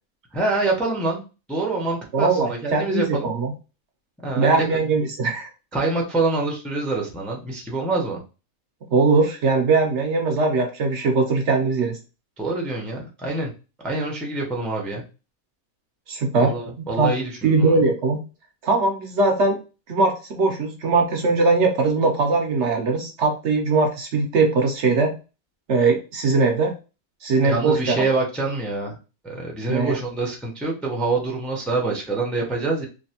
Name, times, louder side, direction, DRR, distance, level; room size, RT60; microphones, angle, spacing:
voice 1, 0.3-1.2 1.5-3.3 4.2-4.6 5.7-8.2 12.4-13.5 13.8-15.0 16.4-17.8 27.4-29.0 29.2-32.8, right 3 dB, ahead, -1 dB, 0.6 m, -26 dB
voice 2, 2.1-3.5 4.4-5.5 8.9-12.0 16.1-16.5 17.0-17.1 17.4-18.2 18.6-19.6 19.9-25.2 25.7-26.7 27.2-28.1 29.7-30.0, right 3 dB, 65° right, 4 dB, 0.9 m, -20 dB
3.2 x 2.5 x 2.8 m, 0.31 s
omnidirectional pair, 1.4 m